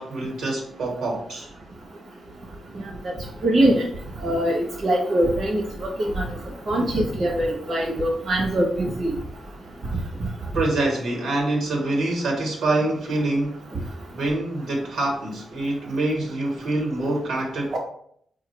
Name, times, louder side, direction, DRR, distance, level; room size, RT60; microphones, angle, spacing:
voice 1, 0.0-1.5 10.5-17.8, right 2 dB, 85° right, 0 dB, 1.2 m, -26 dB
voice 2, 3.4-3.8 4.2-6.2 6.7-9.1 17.7-17.8, right 1 dB, 65° right, -3 dB, 0.9 m, -22 dB
4.5 x 2.4 x 3.1 m, 0.66 s
cardioid pair, 65°, 0 cm